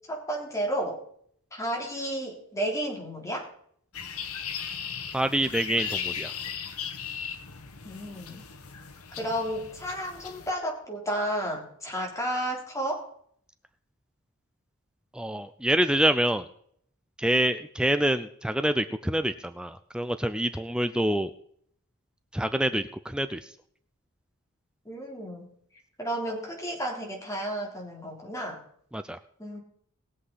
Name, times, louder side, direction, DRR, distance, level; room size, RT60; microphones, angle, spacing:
voice 1, 0.1-1.0 1.5-3.5 7.8-8.4 9.2-13.1 24.9-25.5 26.0-28.6 29.4-29.6, right 1 dB, 15° left, -1 dB, 3.5 m, -32 dB
sound 1, 3.9-10.5, left 7 dB, 85° left, 1.3 m, -37 dB
voice 2, 5.1-6.3 15.1-16.4 17.2-21.3 22.3-23.4 28.9-29.2, right 1 dB, 5° right, 10 dB, 0.5 m, -26 dB
20.5 x 7.6 x 4.1 m, 0.63 s
head